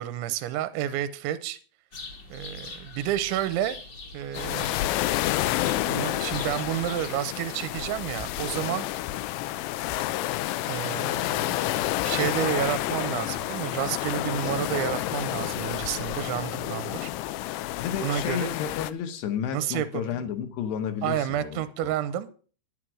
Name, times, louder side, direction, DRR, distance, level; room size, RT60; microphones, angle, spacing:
voice 1, 0.0-1.6 2.3-3.8 4.1-4.8 5.9-8.9 10.7-17.1 18.0-18.5 19.5-20.1 21.0-22.3, right 11 dB, 85° right, 3.1 m, -30 dB
sound 1, 1.9-7.1, left 3 dB, 50° left, 1.2 m, -43 dB
sound 2, 4.3-18.9, left 15 dB, 90° left, 3.1 m, -29 dB
voice 2, 17.8-21.9, left 8 dB, 75° left, 3.0 m, -32 dB
11.0 x 10.0 x 6.2 m
omnidirectional pair, 5.3 m